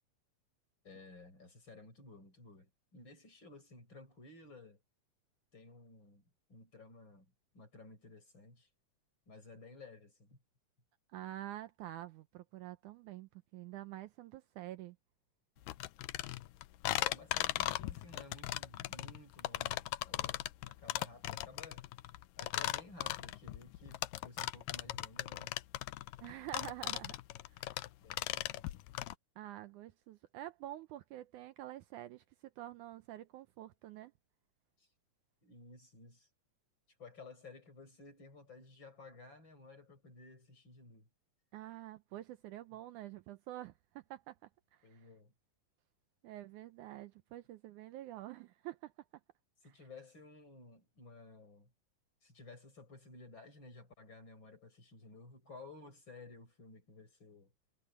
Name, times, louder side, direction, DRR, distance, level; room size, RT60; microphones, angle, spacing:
voice 1, 0.8-4.8 5.5-8.7 9.3-10.4 17.0-20.5 20.8-21.9 22.4-25.6 26.9-27.0 28.0-28.7 34.8-34.9 35.4-36.3 37.0-41.1 44.8-45.3 49.6-51.7 52.2-57.5, left 3 dB, 35° left, 6.2 m, -55 dB
voice 2, 11.1-15.0 26.2-27.1 27.6-27.8 29.4-32.2 32.6-34.1 41.5-44.4 44.7-45.1 46.2-48.9, right 14 dB, 75° right, 2.0 m, -47 dB
sound 1, 15.7-29.1, left 16 dB, 85° left, 2.4 m, -38 dB
omnidirectional pair, 3.8 m